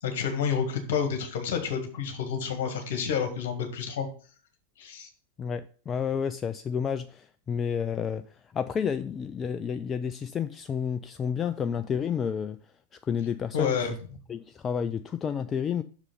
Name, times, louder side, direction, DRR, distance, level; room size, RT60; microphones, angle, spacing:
voice 1, 0.0-4.1 4.8-5.1 13.5-13.9, left 7 dB, 55° left, 1.7 m, -29 dB
voice 2, 5.4-12.6 13.0-13.9 14.3-15.8, left 7 dB, 25° left, 0.3 m, -30 dB
6.3 x 4.9 x 5.4 m
figure-of-eight pair, 90°, 0 cm